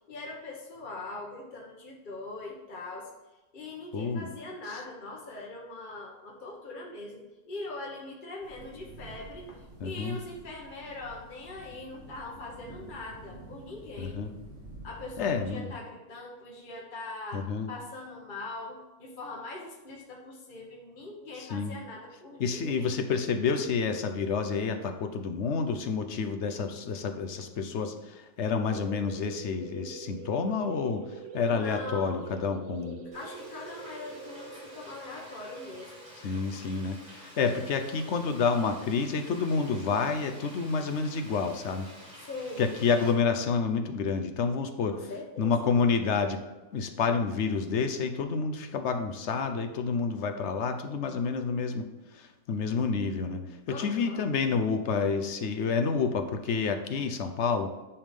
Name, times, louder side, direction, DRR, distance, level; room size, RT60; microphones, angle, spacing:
voice 1, 0.1-3.1 3.5-14.2 14.8-23.0 31.5-32.3 33.1-36.1 42.2-42.7 44.9-45.7 53.7-54.2, left 2 dB, 35° left, -2 dB, 1.1 m, -42 dB
voice 2, 3.9-4.3 9.8-10.2 14.0-14.3 15.2-15.7 17.3-17.7 21.5-21.7 22.4-31.0 31.3-33.0 36.2-41.9 42.6-45.0 45.4-46.4 46.7-51.9 52.1-53.4 53.7-57.7, left 5 dB, 60° left, 7 dB, 0.8 m, -29 dB
sound 1, 8.4-15.5, right 1 dB, 45° right, 1.9 m, -49 dB
sound 2, 28.5-37.8, right 4 dB, 60° right, 0.9 m, -45 dB
Frying (food), 33.1-43.1, equal, 80° right, 3.5 m, -50 dB
9.8 x 3.6 x 5.1 m, 1.1 s
omnidirectional pair, 1.6 m